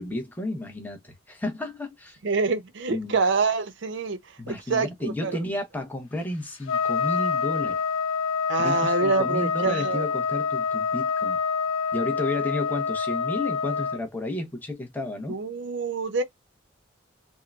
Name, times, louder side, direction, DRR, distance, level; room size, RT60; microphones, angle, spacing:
voice 1, 0.0-2.2 2.9-3.1 4.4-7.8 8.6-11.4 11.9-15.4, left 2 dB, 10° left, 0.7 m, -32 dB
voice 2, 2.2-4.2 4.5-5.4 8.5-10.0 15.3-16.2, right 4 dB, 60° right, 0.5 m, -26 dB
Trumpet, 6.7-14.0, left 5 dB, 75° left, 0.6 m, -27 dB
3.6 x 2.0 x 2.3 m
head